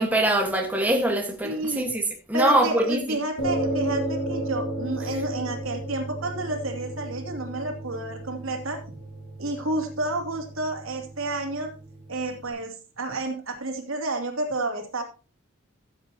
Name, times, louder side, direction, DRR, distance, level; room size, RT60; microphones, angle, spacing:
voice 1, 0.0-3.0, right 1 dB, 10° right, 1.4 m, -23 dB
voice 2, 1.4-1.9 2.3-8.8 9.4-11.7 12.1-15.0, right 2 dB, 75° right, 2.7 m, -30 dB
sound 1, 3.4-12.5, right 1 dB, 85° left, 5.8 m, -33 dB
15.5 x 8.0 x 2.9 m
head